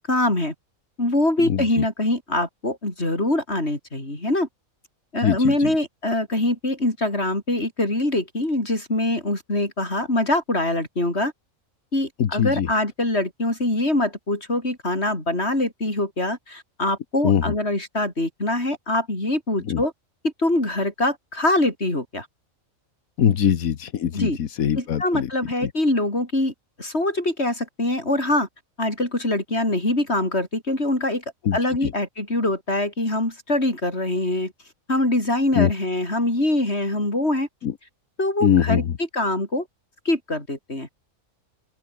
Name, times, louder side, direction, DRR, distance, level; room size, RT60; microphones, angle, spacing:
voice 1, 0.1-0.5 1.0-4.5 5.1-11.3 11.9-19.9 20.2-22.3 24.1-24.4 24.8-28.5 28.8-31.2 31.5-34.5 34.9-37.5 38.2-38.8 39.1-39.7 40.1-40.9, left 1 dB, 50° left, 7.0 m, -24 dB
voice 2, 1.4-1.8 5.2-5.7 12.2-12.7 17.2-17.5 19.7-19.8 23.2-25.3 25.6-25.7 31.4-31.9 35.5-35.7 37.6-37.7 38.4-38.9, left 9 dB, 85° left, 1.6 m, -22 dB
open air
omnidirectional pair, 1.4 m